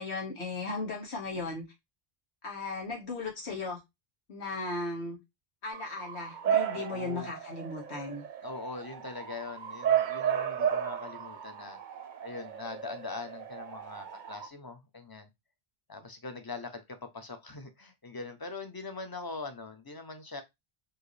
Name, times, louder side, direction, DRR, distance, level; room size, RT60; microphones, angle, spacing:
voice 1, 0.0-1.6 2.4-3.8 4.3-5.2 5.6-8.2, left 3 dB, 85° left, 1.8 m, -36 dB
Bark / Motor vehicle (road) / Siren, 5.7-14.5, right 9 dB, 55° right, 0.7 m, -33 dB
voice 2, 6.7-7.3 8.4-11.8 12.2-15.3 15.9-20.4, left 3 dB, 25° left, 0.6 m, -42 dB
4.6 x 2.9 x 3.2 m
omnidirectional pair, 1.1 m